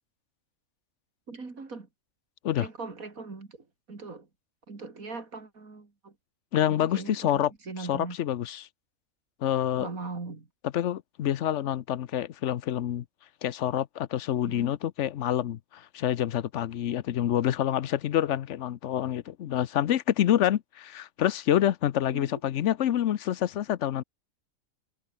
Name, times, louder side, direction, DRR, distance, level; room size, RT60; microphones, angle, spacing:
voice 1, 1.3-1.9 2.6-3.6 3.9-4.3 4.7-6.1 6.8-7.3 7.7-8.2 9.8-10.5 14.5-14.7 22.1-22.4, right 3 dB, 85° right, 3.6 m, -40 dB
voice 2, 6.5-7.5 7.8-8.7 9.4-9.9 10.6-13.0 13.4-24.0, left 11 dB, 65° left, 1.0 m, -27 dB
omnidirectional pair, 1.4 m